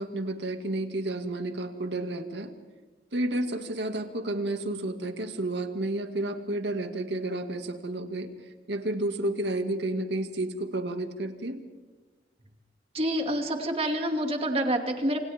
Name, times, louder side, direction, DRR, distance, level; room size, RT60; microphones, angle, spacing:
voice 1, 0.0-2.5 3.1-8.3 8.7-11.6, right 1 dB, 80° right, 5 dB, 2.2 m, -31 dB
voice 2, 12.9-15.3, right 1 dB, 35° right, 3 dB, 2.6 m, -27 dB
28.0 x 27.5 x 3.7 m, 1.3 s
head